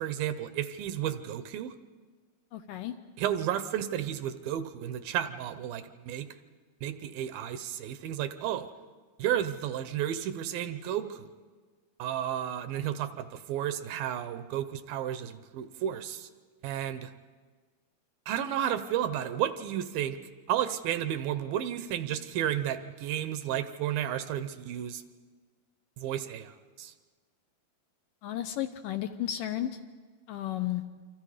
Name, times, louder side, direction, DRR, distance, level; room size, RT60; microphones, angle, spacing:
voice 1, 0.0-1.7 3.2-6.3 6.8-8.7 9.2-11.3 12.0-16.3 16.6-17.1 18.3-20.2 20.5-25.0 26.0-26.9, right 10 dB, 75° right, 11 dB, 2.5 m, -32 dB
voice 2, 2.5-2.9 28.2-29.7 30.3-30.8, left 12 dB, 75° left, 8 dB, 2.1 m, -33 dB
27.5 x 25.0 x 5.0 m, 1.5 s
omnidirectional pair, 4.4 m